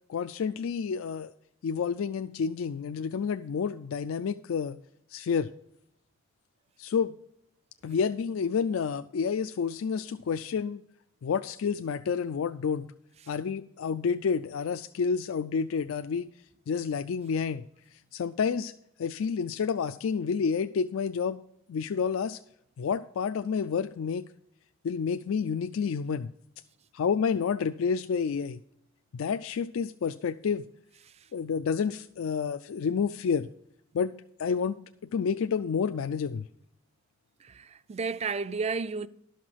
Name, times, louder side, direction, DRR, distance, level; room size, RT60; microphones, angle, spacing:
voice 1, 0.1-1.3 1.6-4.8 5.1-5.5 6.8-7.2 7.8-10.8 11.2-12.9 13.3-16.3 16.7-17.6 18.1-18.7 19.0-21.4 21.7-22.4 22.8-24.2 24.8-26.3 26.9-28.6 29.1-30.7 31.3-33.5 33.9-34.1 34.4-34.8 35.1-36.5, left 6 dB, 85° left, 0.4 m, -29 dB
voice 2, 37.4-39.1, right 4 dB, 30° right, 0.4 m, -32 dB
12.0 x 5.8 x 4.6 m
head